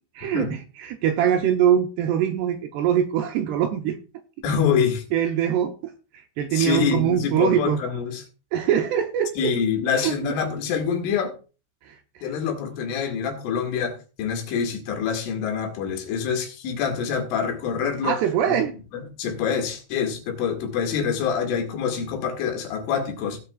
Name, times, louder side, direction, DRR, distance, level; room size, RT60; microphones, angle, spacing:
voice 1, 0.2-4.0 5.1-7.8 8.5-9.5 9.9-10.3 11.8-12.3 18.0-18.7, right 9 dB, 80° right, 2.4 m, -23 dB
voice 2, 4.4-5.0 6.5-8.2 9.4-11.4 12.2-18.2 18.5-18.6 18.9-23.4, left 7 dB, 85° left, 4.6 m, -26 dB
17.5 x 8.3 x 2.4 m
omnidirectional pair, 5.5 m